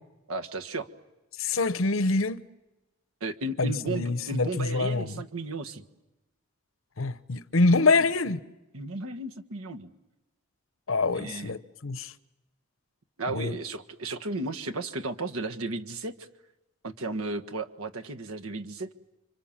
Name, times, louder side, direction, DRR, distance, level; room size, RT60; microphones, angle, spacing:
voice 1, 0.3-0.9 3.2-5.8 7.7-7.9 8.7-9.9 11.1-11.6 13.2-16.3 16.8-18.9, right 2 dB, 80° right, 1.5 m, -34 dB
voice 2, 1.4-2.4 3.6-5.2 7.0-8.4 10.9-12.1 13.3-13.6, left 3 dB, 70° left, 0.9 m, -25 dB
30.0 x 25.5 x 7.4 m
head